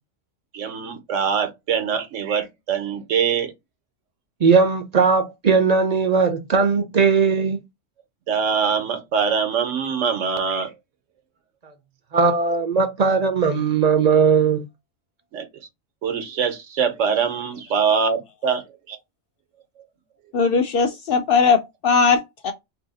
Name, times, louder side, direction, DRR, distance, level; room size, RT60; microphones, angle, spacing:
voice 1, 0.5-3.5 8.3-10.7 15.3-15.5 16.0-19.0, right 6 dB, 80° right, 1.1 m, -23 dB
voice 2, 4.4-7.6 12.1-14.6, right 5 dB, 45° right, 0.6 m, -18 dB
voice 3, 20.3-22.5, left 5 dB, 60° left, 0.6 m, -19 dB
2.8 x 2.6 x 4.0 m
omnidirectional pair, 1.3 m